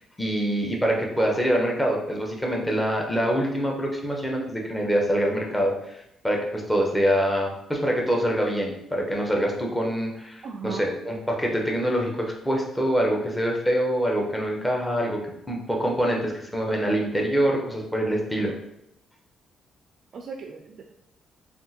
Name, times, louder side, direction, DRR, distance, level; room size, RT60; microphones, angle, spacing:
voice 1, 0.0-15.2 15.5-18.5, equal, 10° left, 0 dB, 0.8 m, -25 dB
voice 2, 10.4-11.0 20.1-20.9, right 5 dB, 60° right, 3 dB, 0.3 m, -37 dB
3.5 x 2.4 x 2.8 m, 0.81 s
cardioid pair, 90°, 0 cm